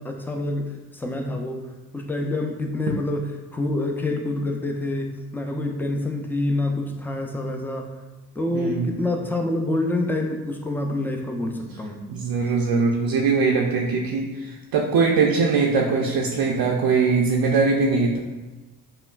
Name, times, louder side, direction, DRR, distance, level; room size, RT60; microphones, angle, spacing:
voice 1, 0.0-1.6 1.9-7.9 8.4-12.0, left 2 dB, 5° left, 3 dB, 0.4 m, -27 dB
voice 2, 8.5-8.9 12.1-18.2, right 4 dB, 50° right, 0 dB, 0.5 m, -21 dB
5.5 x 2.2 x 2.4 m, 1.1 s
hypercardioid pair, 60°, 46 cm